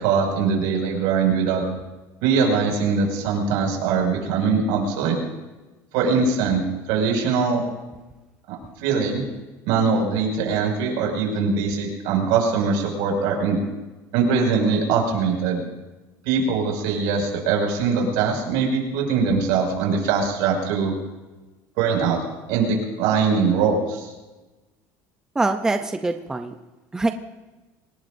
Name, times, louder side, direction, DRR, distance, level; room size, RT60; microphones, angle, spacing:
voice 1, 0.0-1.6 2.2-5.2 5.9-7.7 8.5-9.2 9.7-13.6 14.1-15.6 16.2-20.9 21.8-22.2 22.5-24.1, right 5 dB, 75° right, 1 dB, 6.1 m, -22 dB
voice 2, 25.3-26.5 26.9-27.1, right 2 dB, 10° right, 6 dB, 0.6 m, -23 dB
25.5 x 19.5 x 2.7 m, 1.1 s
cardioid pair, 170°, 8 cm